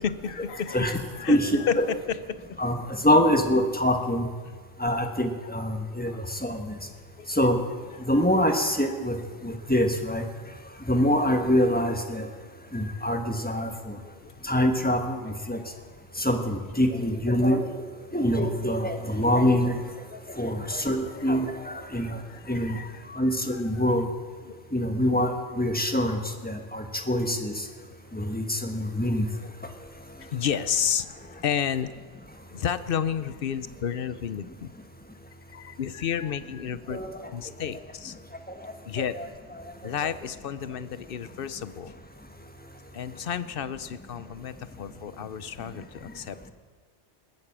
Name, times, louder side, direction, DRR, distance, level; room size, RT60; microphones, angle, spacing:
voice 1, 0.0-2.6 4.4-4.5 6.0-6.2 7.2-7.3 8.0-8.1 9.3-9.6 13.9-14.4 15.5-15.6 20.1-20.4 21.8-22.0 22.3-23.0 23.7-23.8 24.4-24.6 27.8-28.0 30.2-32.2 32.5-34.7 35.5-37.0 37.3-38.2 38.9-39.1 39.8-41.9 42.9-46.5, left 8 dB, 60° left, 14 dB, 0.8 m, -32 dB
voice 2, 1.3-1.6 2.6-2.8 3.0-4.3 4.8-6.7 7.3-7.6 8.1-9.2 9.4-10.2 10.9-12.3 12.7-13.9 14.4-15.6 16.2-17.8 18.1-19.8 20.4-22.2 22.5-22.8 23.1-24.1 24.7-27.5 28.1-29.2 36.9-37.1 39.1-39.3 40.0-40.1, equal, 10° left, 5 dB, 1.3 m, -25 dB
20.0 x 9.8 x 7.4 m, 1.5 s
omnidirectional pair, 1.2 m